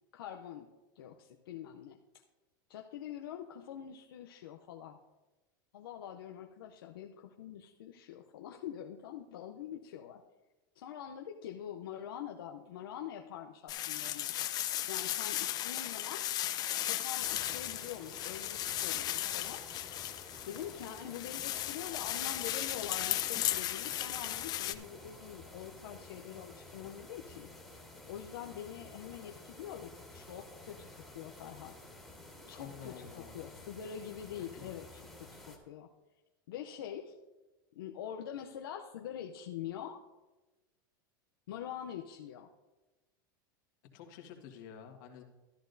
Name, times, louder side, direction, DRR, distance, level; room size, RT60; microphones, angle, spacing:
voice 1, 0.1-0.7 1.0-2.0 2.7-5.0 5.7-10.2 10.7-14.3 14.9-16.3 16.8-19.7 20.4-27.5 28.0-31.8 32.5-35.9 36.5-37.2 37.7-40.0 41.5-42.5, left 9 dB, 90° left, 3 dB, 0.6 m, -45 dB
sound 1, 13.7-24.7, left 13 dB, 35° left, 0.5 m, -36 dB
sound 2, 17.2-35.6, left 2 dB, ahead, 2.0 m, -52 dB
voice 2, 32.6-33.6 34.4-34.7 43.9-45.2, left 7 dB, 65° left, 3 dB, 1.6 m, -50 dB
13.0 x 11.0 x 2.7 m, 1.1 s
supercardioid pair, 130°, 12 cm